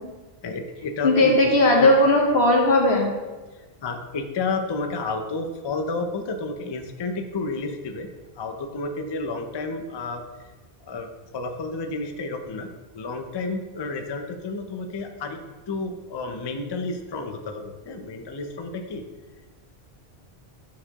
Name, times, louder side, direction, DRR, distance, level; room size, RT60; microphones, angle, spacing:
voice 1, 0.4-1.4 1.8-1.9 3.6-8.1 8.4-10.2 10.8-11.1 11.3-12.7 12.9-15.4 15.7-19.0, left 3 dB, 35° left, 5 dB, 0.4 m, -31 dB
voice 2, 1.0-3.1, left 1 dB, 85° left, 0 dB, 1.4 m, -17 dB
9.2 x 4.4 x 2.9 m, 1.2 s
omnidirectional pair, 1.1 m